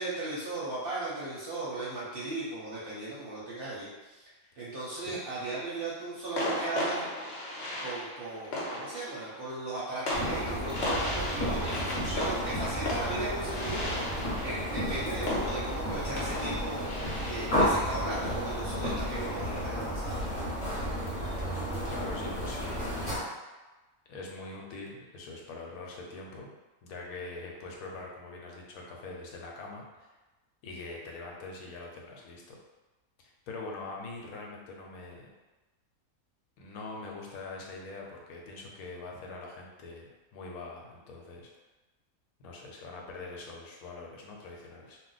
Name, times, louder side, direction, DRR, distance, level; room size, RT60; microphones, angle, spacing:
voice 1, 0.0-4.3 4.6-7.1 7.8-20.2, right 2 dB, 55° right, -7 dB, 0.7 m, -37 dB
sound 1, 4.8-5.4 6.4-19.8, left 1 dB, 55° left, 0.9 m, -37 dB
sound 2, 10.1-23.2, equal, 35° left, 1.0 m, -32 dB
voice 2, 21.9-23.1 24.1-26.5 26.8-30.1 30.6-32.6 33.2-35.3 36.6-41.5 42.4-45.0, left 3 dB, 85° left, -1 dB, 1.1 m, -43 dB
2.5 x 2.1 x 3.9 m, 1.1 s
omnidirectional pair, 1.5 m